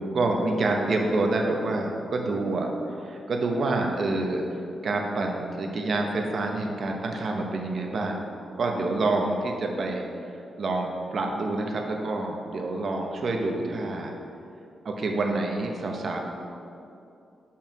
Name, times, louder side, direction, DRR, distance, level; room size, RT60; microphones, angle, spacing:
voice 1, 0.0-2.7 3.0-4.4 4.8-8.2 8.6-10.0 10.6-14.1 14.8-16.2, right 2 dB, 50° right, 2 dB, 0.8 m, -27 dB
5.6 x 4.5 x 6.0 m, 2.7 s
wide cardioid pair, 130°, 0 cm